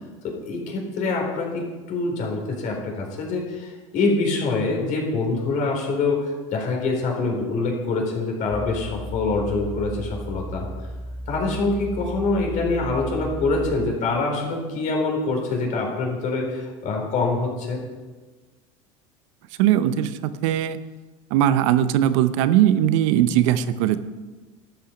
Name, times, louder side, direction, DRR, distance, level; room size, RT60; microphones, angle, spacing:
voice 1, 0.2-10.7 11.3-17.8, left 3 dB, 55° left, 1 dB, 4.0 m, -25 dB
sound 1, 8.5-13.8, right 1 dB, 5° left, 1.2 m, -34 dB
voice 2, 19.6-20.8 21.3-24.0, right 11 dB, 75° right, 13 dB, 0.7 m, -19 dB
12.0 x 8.6 x 5.2 m, 1.3 s
supercardioid pair, 100°, 16 cm